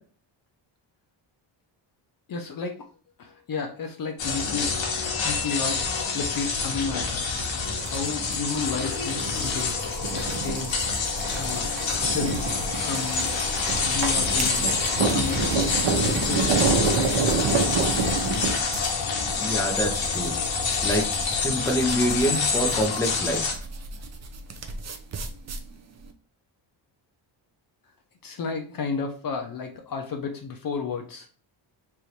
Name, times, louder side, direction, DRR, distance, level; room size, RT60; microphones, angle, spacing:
voice 1, 2.3-2.8 3.2-4.8 5.2-11.1 11.3-11.7 12.0-12.4 12.8-13.3 13.8-14.8 15.1-17.3 28.2-31.3, left 5 dB, 50° left, 4 dB, 0.7 m, -33 dB
sound 1, 4.2-23.5, left 5 dB, 75° left, 1.2 m, -27 dB
sound 2, 7.6-18.5, right 5 dB, 75° right, 1.1 m, -28 dB
sound 3, 8.6-26.1, right 1 dB, 35° right, 0.6 m, -38 dB
voice 2, 19.4-21.1 21.3-23.6, equal, 5° left, 1 dB, 0.9 m, -27 dB
3.4 x 2.6 x 4.4 m, 0.40 s
cardioid pair, 130°, 45 cm